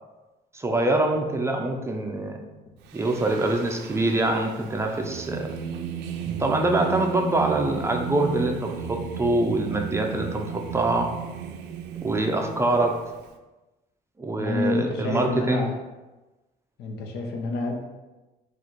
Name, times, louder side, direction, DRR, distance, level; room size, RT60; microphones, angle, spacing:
voice 1, 0.5-2.4 2.9-5.6 6.4-11.1 12.0-13.0 14.2-15.7, right 2 dB, 15° right, 3 dB, 0.5 m, -24 dB
Singing, 2.9-13.3, right 8 dB, 90° right, 0.4 m, -35 dB
voice 2, 14.3-15.8 16.8-17.8, left 2 dB, 75° left, 2 dB, 0.8 m, -28 dB
3.9 x 2.4 x 4.5 m, 1.1 s
cardioid pair, 110°, 17 cm